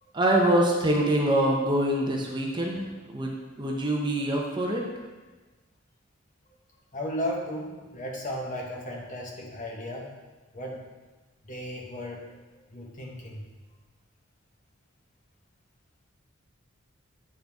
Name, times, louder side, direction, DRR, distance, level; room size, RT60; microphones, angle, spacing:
voice 1, 0.1-4.8, right 1 dB, 20° right, -1 dB, 0.7 m, -25 dB
voice 2, 6.9-10.1 10.5-10.8 11.4-12.2 12.7-13.5, equal, 40° left, -1 dB, 1.1 m, -35 dB
8.6 x 3.9 x 3.5 m, 1.3 s
head